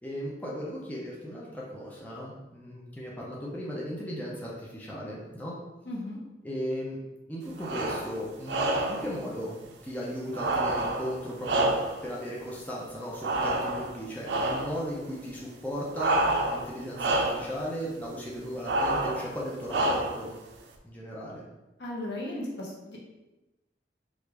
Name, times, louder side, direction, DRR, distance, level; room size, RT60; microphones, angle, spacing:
voice 1, 0.0-5.6 6.4-7.0 7.3-9.6 9.8-11.7 12.0-20.3 20.8-21.4, equal, 10° left, -5 dB, 0.4 m, -36 dB
voice 2, 5.9-6.2 21.8-23.0, left 1 dB, 75° left, -3 dB, 0.8 m, -36 dB
sound 1, 7.6-8.1 8.5-9.1 10.3-12.1 13.2-14.0 14.3-14.8 15.9-16.7 16.9-17.5 18.6-19.3 19.7-20.3, right 1 dB, 75° right, 0.4 m, -28 dB
3.1 x 2.4 x 3.3 m, 1.0 s
head